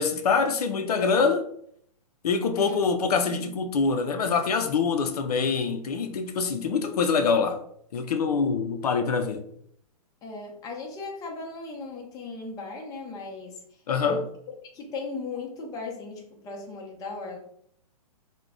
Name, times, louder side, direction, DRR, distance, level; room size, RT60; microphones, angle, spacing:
voice 1, 0.0-1.4 2.2-7.6 7.9-9.4 13.9-14.2, left 5 dB, 80° left, 0.4 m, -25 dB
voice 2, 3.2-3.6 10.2-13.6 14.0-17.4, left 3 dB, 20° left, 0.6 m, -37 dB
2.3 x 2.1 x 3.6 m
hypercardioid pair, 130°, 20 cm